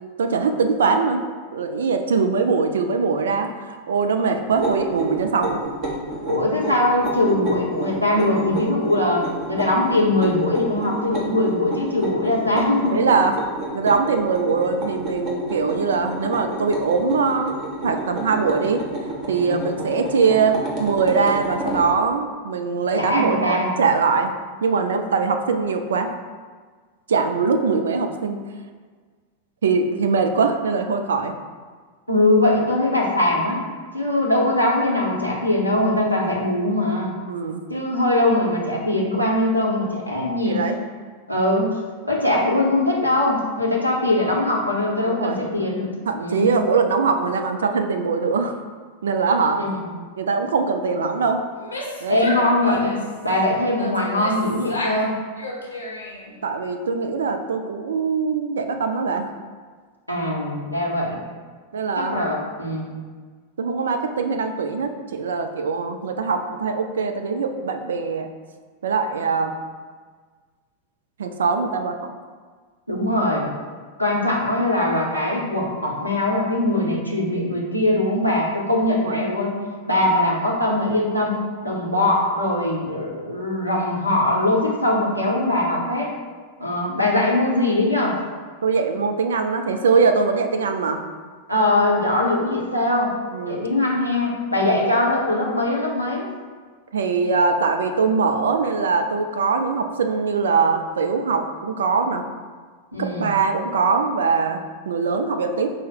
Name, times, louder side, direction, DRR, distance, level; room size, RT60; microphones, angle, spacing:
voice 1, 0.2-1.2 1.5-5.6 12.9-13.4 13.7-18.8 19.3-24.3 24.6-26.1 27.1-28.4 29.6-31.3 37.3-37.6 40.4-40.8 45.1-45.4 46.1-48.6 49.0-49.6 50.2-51.4 52.0-52.2 56.4-59.3 61.7-62.2 63.6-68.3 68.8-69.5 71.2-72.1 78.9-79.2 88.6-91.0 93.3-93.7 96.9-102.2 103.0-105.7, right 5 dB, 65° right, 6 dB, 0.3 m, -22 dB
sound 1, 4.5-21.9, right 2 dB, 35° right, 0.9 m, -31 dB
voice 2, 6.3-13.0 19.3-19.6 23.0-23.7 32.1-33.6 33.9-37.1 37.7-40.6 41.3-45.9 46.2-46.5 49.5-49.7 52.1-53.0 53.2-55.2 60.1-61.2 61.9-63.0 72.9-73.5 74.0-79.6 79.9-86.1 86.6-88.2 91.5-93.1 93.5-96.3 102.9-103.3, left 1 dB, 90° right, -2 dB, 0.7 m, -21 dB
Female speech woman speaking / Yell, 51.5-53.2 53.8-55.1 55.4-56.3, left 1 dB, 80° left, 0.7 m, -31 dB
4.7 x 2.1 x 4.4 m, 1.5 s
figure-of-eight pair, 90°, 0 cm